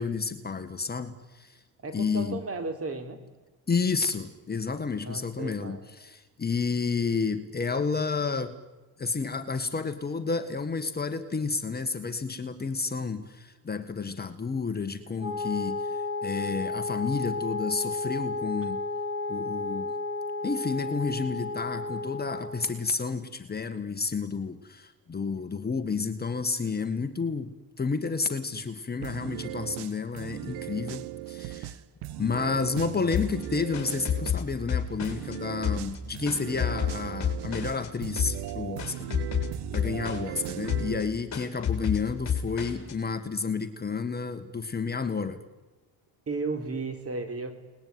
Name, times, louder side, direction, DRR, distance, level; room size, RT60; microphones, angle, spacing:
voice 1, 0.0-1.6 1.9-2.4 3.7-8.6 9.0-18.8 19.3-19.9 20.4-31.8 32.2-39.1 39.7-45.4, left 4 dB, 25° left, 8 dB, 1.8 m, -31 dB
voice 2, 1.8-3.2 5.1-5.8 46.3-47.5, right 3 dB, 35° right, 7 dB, 4.3 m, -34 dB
Wind instrument woodwind instrument, 15.2-22.6, left 3 dB, 15° right, 7.4 m, -32 dB
sound 1, 29.0-34.4 35.0-41.0, right 15 dB, 85° right, 1.3 m, -38 dB
sound 2, 33.1-35.4 35.6-37.9 38.2-38.5 38.8-40.4 40.7-41.0 41.3-42.9, left 8 dB, 45° left, 6.5 m, -30 dB
30.0 x 20.5 x 9.6 m, 1.1 s
cardioid pair, 105°, 39 cm